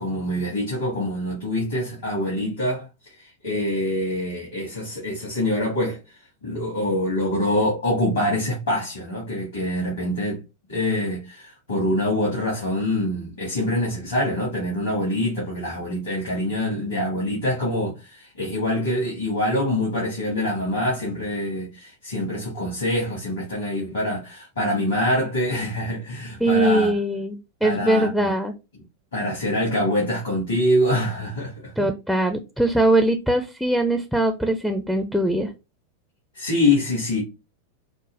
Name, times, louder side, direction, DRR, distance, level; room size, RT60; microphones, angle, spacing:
voice 1, 0.0-2.9 3.2-10.4 10.7-27.0 27.6-28.3 29.1-31.5 36.3-37.2, left 1 dB, 70° left, 1.8 m, -25 dB
voice 2, 26.4-28.5 31.8-35.5, right 1 dB, ahead, 0.4 m, -21 dB
4.9 x 2.0 x 2.6 m
figure-of-eight pair, 90°, 0 cm